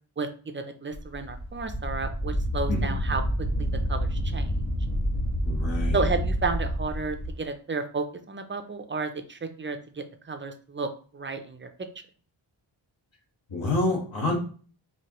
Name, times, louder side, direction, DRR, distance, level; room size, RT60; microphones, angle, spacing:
voice 1, 0.5-3.2 3.6-4.5 5.9-11.7, right 4 dB, 25° right, 7 dB, 0.4 m, -32 dB
Wind, 0.9-7.3, equal, 35° left, 1.4 m, -28 dB
voice 2, 5.4-6.0 13.5-14.4, left 2 dB, 70° left, -2 dB, 1.5 m, -27 dB
4.5 x 2.8 x 3.0 m, 0.41 s
wide cardioid pair, 105°, 48 cm